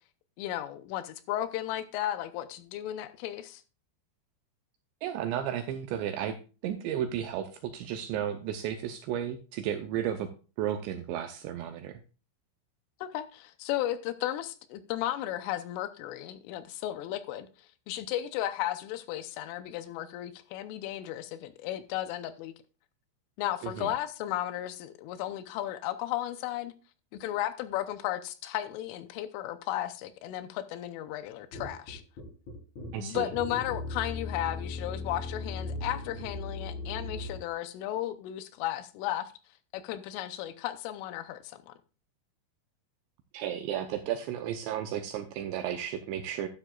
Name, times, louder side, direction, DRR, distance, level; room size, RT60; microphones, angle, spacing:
voice 1, 0.4-3.6 13.0-22.5 23.4-26.7 27.1-32.0 32.9-39.3 39.7-41.7, left 13 dB, 80° left, 3.2 m, -34 dB
voice 2, 5.0-6.4 6.6-10.3 10.6-12.0 23.6-23.9 32.9-33.3 43.3-46.5, right 10 dB, 80° right, 2.6 m, -33 dB
sound 1, 31.5-37.4, left 2 dB, 40° left, 3.9 m, -38 dB
12.0 x 10.0 x 2.4 m
omnidirectional pair, 5.9 m